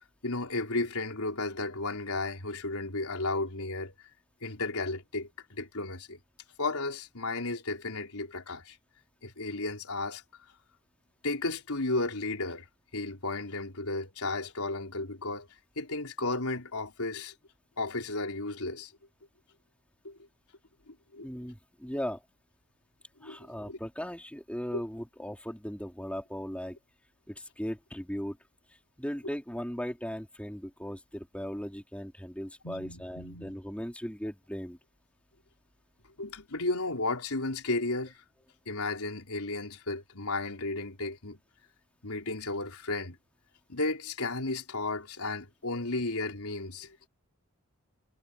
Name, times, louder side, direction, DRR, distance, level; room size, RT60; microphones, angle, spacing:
voice 1, 0.2-3.9 4.4-6.2 6.6-8.8 9.2-10.2 11.2-12.6 12.9-15.5 15.8-17.3 17.8-18.9 20.0-20.2 20.9-21.3 23.2-23.4 23.7-23.8 24.7-24.8 32.6-33.6 36.2-38.2 38.7-41.4 42.0-43.2 43.7-47.1, left 2 dB, 80° left, 4.2 m, -34 dB
voice 2, 21.2-22.2 23.2-26.8 27.3-28.4 29.0-34.8 45.7-45.8, equal, 5° left, 3.4 m, -38 dB
head